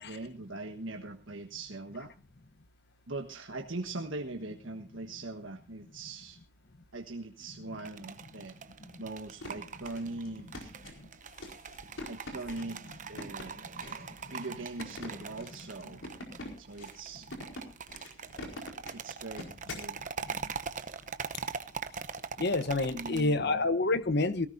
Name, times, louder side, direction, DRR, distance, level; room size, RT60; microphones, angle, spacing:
voice 1, 0.0-2.1 3.1-6.4 6.9-8.5 9.0-10.7 12.1-12.8 13.1-16.0 16.6-17.3 18.9-19.5 19.8-20.0 22.9-23.6, right 2 dB, 85° right, 3 dB, 1.5 m, -41 dB
sound 1, 7.7-23.2, right 5 dB, 40° right, 0.9 m, -43 dB
sound 2, 9.2-19.9, left 1 dB, 85° left, 4.6 m, -45 dB
voice 2, 22.4-24.5, left 2 dB, 60° left, 13 dB, 1.1 m, -29 dB
18.0 x 17.5 x 2.7 m, 0.31 s
head